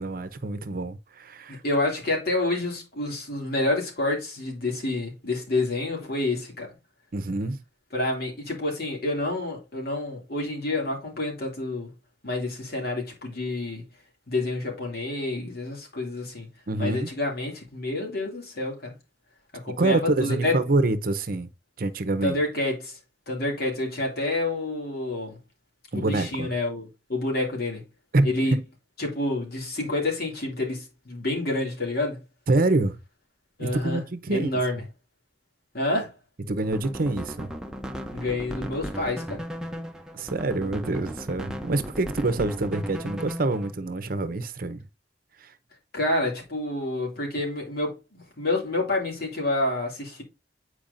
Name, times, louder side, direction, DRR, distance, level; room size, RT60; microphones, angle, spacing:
voice 1, 0.0-1.6 7.1-7.6 16.7-17.1 19.8-21.5 21.8-22.4 25.9-26.5 28.1-28.6 32.5-33.0 33.6-34.5 36.5-37.5 40.1-44.8 45.4-45.5, right 2 dB, 55° right, 0.7 m, -26 dB
voice 2, 1.5-6.7 7.9-11.9 12.2-13.8 14.3-16.5 16.8-18.9 19.6-20.6 22.2-23.0 23.3-25.4 25.9-27.8 28.2-28.6 29.0-32.2 33.6-34.0 34.3-34.8 35.7-36.1 38.1-39.4 45.9-50.2, left 2 dB, 60° left, 2.5 m, -28 dB
sound 1, 36.6-43.7, equal, 5° right, 0.6 m, -36 dB
8.8 x 4.6 x 2.6 m
head